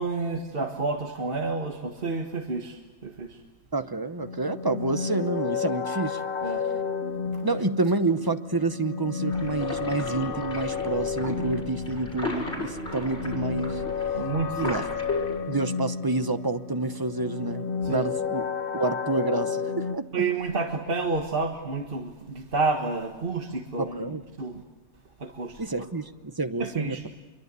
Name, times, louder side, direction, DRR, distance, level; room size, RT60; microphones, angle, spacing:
voice 1, 0.0-3.4 6.4-6.6 7.3-7.4 14.1-14.9 17.8-18.0 20.1-24.6 25.2-25.6 26.6-27.0, right 3 dB, 50° right, 3 dB, 1.8 m, -30 dB
voice 2, 3.7-6.2 7.4-13.8 14.5-15.0 15.5-18.5 18.7-20.3 23.8-24.2 25.6-27.0, right 3 dB, 20° right, 10 dB, 0.9 m, -28 dB
sound 1, 4.2-20.0, left 6 dB, 50° left, 1.2 m, -32 dB
sound 2, 9.3-15.4, left 2 dB, 65° left, 6.3 m, -35 dB
26.0 x 23.5 x 8.4 m, 1.2 s
omnidirectional pair, 1.2 m